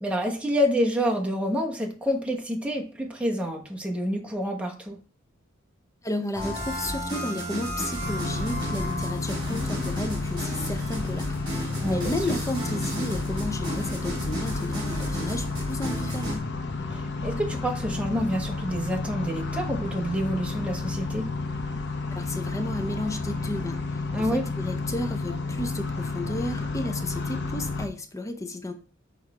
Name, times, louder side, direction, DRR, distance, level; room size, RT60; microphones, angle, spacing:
voice 1, 0.0-5.0 11.8-12.1 16.9-21.3 24.1-24.4, equal, 5° right, 0 dB, 1.1 m, -28 dB
voice 2, 6.0-16.5 22.1-28.7, left 1 dB, 15° left, 8 dB, 0.5 m, -33 dB
sound 1, 6.3-16.4, equal, 25° right, 3.3 m, -33 dB
sound 2, 8.0-27.9, left 3 dB, 55° left, 0.8 m, -31 dB
6.4 x 3.4 x 4.8 m, 0.40 s
head